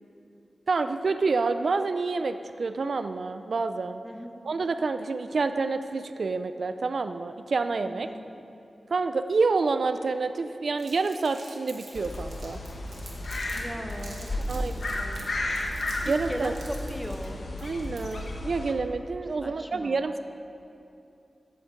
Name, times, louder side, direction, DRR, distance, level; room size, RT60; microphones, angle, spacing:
voice 1, 0.7-4.0 4.4-8.1 8.9-12.6 14.5-14.7 15.0-15.2 16.1-16.5 17.6-20.2, right 4 dB, 70° right, 10 dB, 0.3 m, -28 dB
voice 2, 4.0-4.4 7.8-8.3 13.5-15.3 16.0-17.4 19.4-20.1, equal, 5° left, 4 dB, 0.8 m, -38 dB
Crumpling crinkling, 10.8-13.6 13.9-18.3, right 3 dB, 85° right, 1.8 m, -47 dB
sound 1, 11.9-18.7, left 1 dB, 65° left, 0.9 m, -33 dB
8.7 x 6.5 x 7.5 m, 2.7 s
wide cardioid pair, 105°, 0 cm